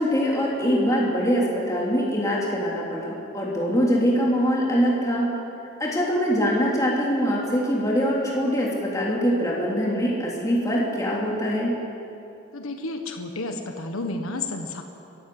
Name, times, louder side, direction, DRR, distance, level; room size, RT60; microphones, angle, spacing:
voice 1, 0.0-5.3 5.8-11.8, equal, 15° left, -4 dB, 3.2 m, -23 dB
voice 2, 12.5-14.8, left 2 dB, 90° left, 4 dB, 1.5 m, -31 dB
24.0 x 14.5 x 7.8 m, 2.8 s
head